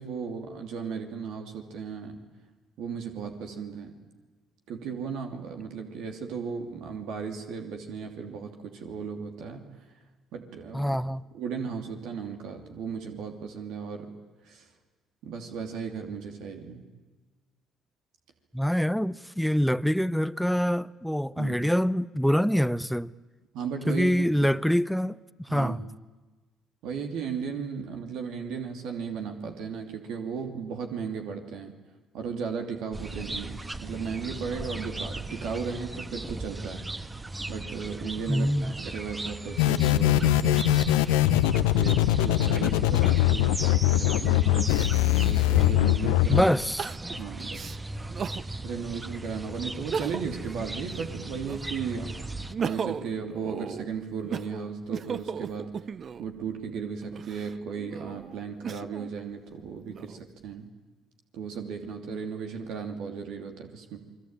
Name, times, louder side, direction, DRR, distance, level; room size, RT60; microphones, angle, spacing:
voice 1, 0.0-2.2 2.8-3.9 4.7-9.7 10.3-11.0 11.3-14.1 14.4-14.7 15.2-16.8 21.4-21.6 23.5-24.1 24.4-24.5 25.5-25.7 26.8-31.7 32.1-36.9 37.5-40.7 41.5-44.8 45.2-46.5 47.1-47.7 48.6-52.3 52.6-55.7 56.2-60.7 61.3-64.0, right 6 dB, 70° right, 2.9 m, -35 dB
voice 2, 10.7-11.2 18.5-23.1 23.9-25.8 38.3-38.7 46.3-46.9, equal, ahead, 0.8 m, -25 dB
sound 1, 32.9-52.5, right 2 dB, 20° right, 1.4 m, -37 dB
sound 2, 39.6-46.4, left 14 dB, 80° left, 0.9 m, -22 dB
Crying sobbing, 45.4-45.5 46.8-48.5 49.0-49.1 49.7-50.4 50.8-51.9 52.3-56.3 57.0-59.1 59.7-60.5, right 6 dB, 45° right, 0.8 m, -36 dB
28.5 x 22.0 x 9.1 m
hypercardioid pair, 55°, 0 cm